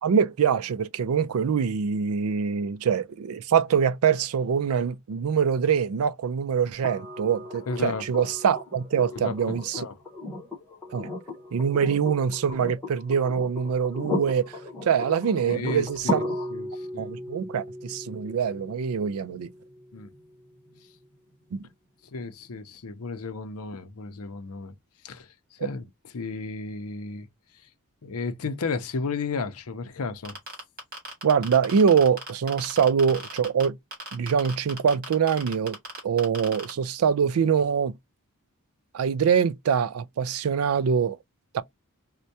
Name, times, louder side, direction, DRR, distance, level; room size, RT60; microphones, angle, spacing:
voice 1, 0.0-9.8 10.9-11.1 11.5-16.2 17.0-19.5 21.5-21.7 31.2-33.8 34.1-35.8 36.0-37.9 38.9-41.2 41.5-41.6, right 7 dB, 70° right, 0.4 m, -24 dB
sound 1, 6.8-20.8 22.5-22.6, left 2 dB, 10° left, 1.1 m, -36 dB
voice 2, 7.7-8.0 9.1-9.9 15.5-17.1 19.9-20.1 22.1-24.7 25.0-25.9 26.1-27.3 28.0-30.4, left 4 dB, 70° left, 0.6 m, -33 dB
sound 2, 30.2-33.6 33.9-36.7, right 2 dB, 45° right, 1.8 m, -37 dB
4.4 x 2.2 x 2.6 m
head